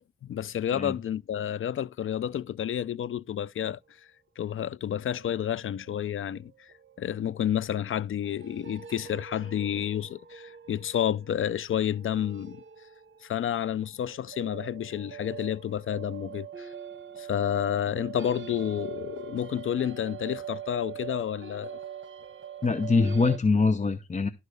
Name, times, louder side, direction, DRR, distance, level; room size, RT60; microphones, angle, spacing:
voice 1, 0.2-3.8 4.4-6.7 7.0-12.6 13.2-16.7 17.2-21.8, left 10 dB, 80° left, 0.4 m, -30 dB
sound 1, 5.0-7.7 8.2-13.8 14.1-23.4, right 8 dB, 70° right, 1.0 m, -43 dB
voice 2, 22.6-24.3, left 4 dB, 35° left, 0.8 m, -23 dB
12.0 x 8.2 x 3.4 m
wide cardioid pair, 100°, 21 cm